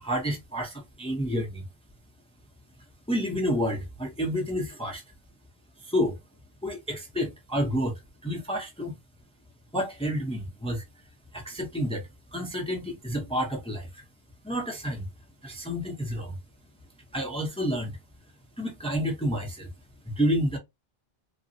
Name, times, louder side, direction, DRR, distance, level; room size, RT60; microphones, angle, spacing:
voice 1, 0.0-1.7 3.1-5.0 5.8-6.2 6.6-9.0 9.7-10.8 11.3-14.0 14.4-15.1 15.4-16.3 17.1-18.0 18.6-19.7 20.0-20.6, equal, 5° left, 0.6 m, -29 dB
3.8 x 2.0 x 2.7 m
omnidirectional pair, 1.1 m